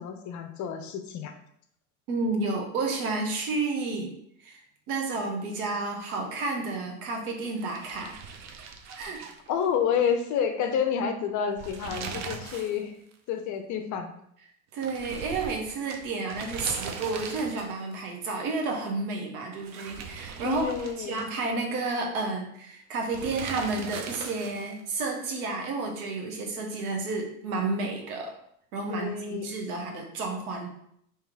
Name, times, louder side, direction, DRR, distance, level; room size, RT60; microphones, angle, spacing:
voice 1, 0.0-1.3 9.5-12.9 13.3-14.1 20.4-21.2 28.9-29.5, left 7 dB, 40° left, 7 dB, 0.6 m, -29 dB
voice 2, 2.1-4.1 4.4-8.2 9.0-9.3 14.7-20.7 21.0-28.3 28.7-30.7, right 3 dB, 70° right, 1 dB, 1.1 m, -31 dB
sound 1, 7.5-10.0 10.3-10.4 11.4-12.8 13.1-13.2 14.8-17.9 19.5-21.5 23.1-24.8, right 5 dB, 40° right, 0.6 m, -40 dB
3.1 x 3.0 x 3.7 m, 0.71 s
hypercardioid pair, 80°, 44 cm